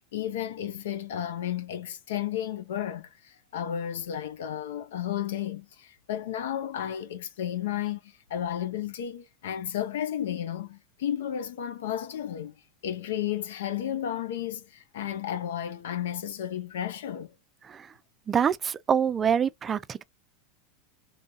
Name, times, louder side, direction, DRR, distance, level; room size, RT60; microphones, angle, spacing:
voice 1, 0.1-12.5 12.8-17.3, left 10 dB, 85° left, 0.5 m, -33 dB
voice 2, 18.3-20.0, right 7 dB, 25° right, 0.4 m, -25 dB
3.1 x 2.2 x 2.6 m
supercardioid pair, 130°, 0 cm